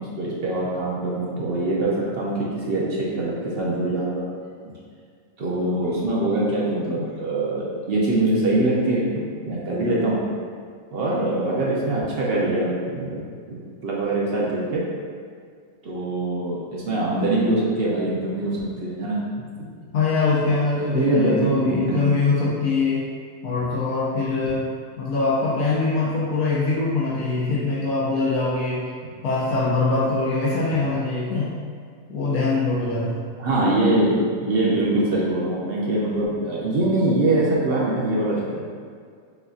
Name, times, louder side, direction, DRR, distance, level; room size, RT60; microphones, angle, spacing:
voice 1, 0.0-4.3 5.4-10.2 10.9-13.2 13.5-14.8 15.8-19.2 20.9-22.1 33.4-38.6, right 2 dB, 55° right, -5 dB, 0.8 m, -23 dB
voice 2, 19.9-23.1 23.4-24.7 25.0-28.8 29.2-31.5 32.1-33.2, left 3 dB, 80° left, -7 dB, 1.3 m, -23 dB
6.1 x 2.7 x 2.4 m, 2.1 s
omnidirectional pair, 1.5 m